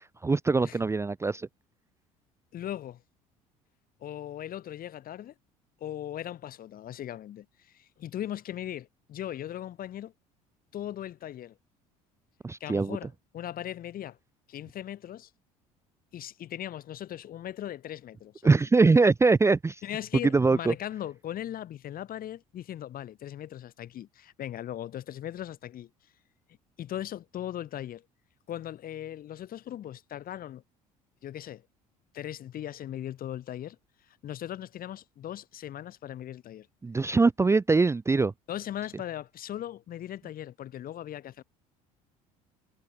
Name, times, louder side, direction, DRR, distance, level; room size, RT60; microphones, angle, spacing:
voice 1, 0.2-1.5 12.4-13.0 18.4-19.8 20.3-20.7 36.8-38.3, right 4 dB, 15° right, 0.5 m, -22 dB
voice 2, 2.5-3.0 4.0-5.3 5.8-10.1 10.7-11.6 12.6-13.1 13.3-14.2 14.5-15.3 16.1-18.6 19.8-25.9 26.8-28.0 28.5-30.6 31.2-31.6 32.1-33.8 34.1-36.7 38.5-41.4, left 11 dB, 50° left, 3.0 m, -38 dB
hypercardioid pair, 65°, 19 cm